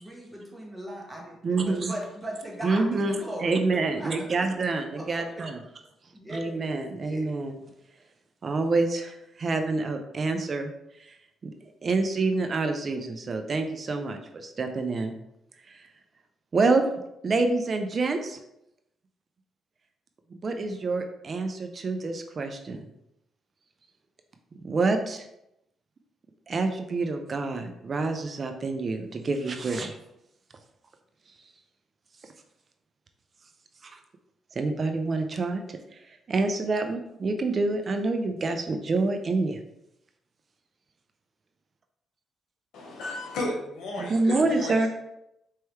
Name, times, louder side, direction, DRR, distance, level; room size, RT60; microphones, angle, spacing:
voice 1, 0.0-3.5 4.0-4.5 5.0-5.4 6.1-7.3, right 1 dB, 5° right, -2 dB, 1.3 m, -39 dB
voice 2, 1.4-1.9 2.6-5.6 6.3-7.6 8.4-10.7 11.1-11.2 11.4-11.5 11.8-15.2 15.7-15.9 16.5-16.8 17.2-18.4 20.3-22.8 24.6-25.3 26.5-30.0 33.8-34.0 34.5-35.8 36.3-39.6 44.0-44.9, right 3 dB, 40° right, 6 dB, 0.5 m, -27 dB
voice 3, 42.7-44.9, left 2 dB, 80° left, -1 dB, 1.2 m, -34 dB
4.6 x 3.0 x 3.2 m, 0.83 s
cardioid pair, 90°, 0 cm